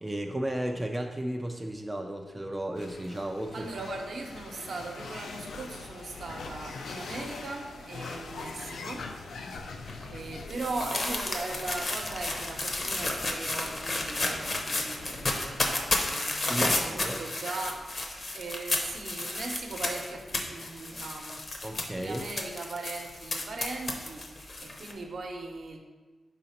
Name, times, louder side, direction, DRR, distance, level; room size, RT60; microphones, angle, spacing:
voice 1, 0.0-3.7 16.5-17.2 21.6-22.2, right 1 dB, 10° right, 2 dB, 0.3 m, -34 dB
sound 1, 2.8-17.1, left 4 dB, 85° left, 0.5 m, -44 dB
voice 2, 3.5-9.1 10.1-15.6 16.0-17.8 18.3-25.8, right 3 dB, 65° right, 2 dB, 0.8 m, -39 dB
sound 2, 9.9-24.9, left 2 dB, 35° left, 0.7 m, -32 dB
4.8 x 3.9 x 5.7 m, 1.3 s
wide cardioid pair, 160°, 0 cm